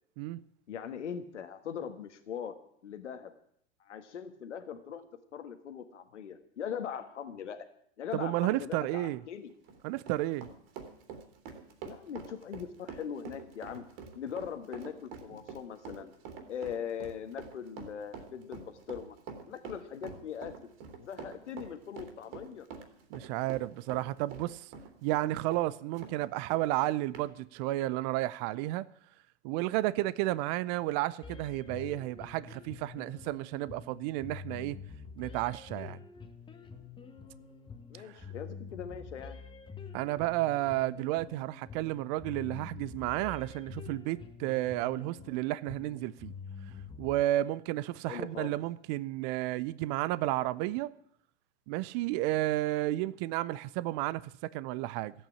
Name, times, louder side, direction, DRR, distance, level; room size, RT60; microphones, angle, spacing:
voice 1, 0.7-2.6 2.8-3.3 3.8-5.0 5.3-7.6 8.0-9.5 11.8-13.8 14.1-16.1 16.5-19.2 19.5-20.5 21.0-22.7 37.9-39.4 48.1-48.6, left 8 dB, 85° left, 1.5 m, -40 dB
voice 2, 8.1-9.2 9.8-10.5 23.1-24.7 25.0-28.8 29.4-34.8 35.2-36.0 38.0-38.1 39.9-46.3 47.0-50.9 51.7-55.1, right 16 dB, 40° right, 0.5 m, -32 dB
Run, 9.5-26.2 26.5-26.6 27.1-27.3, right 6 dB, 55° right, 3.0 m, -46 dB
sound 1, 31.2-47.2, left 5 dB, 15° left, 1.4 m, -47 dB
14.0 x 8.8 x 9.9 m
hypercardioid pair, 115°, 35 cm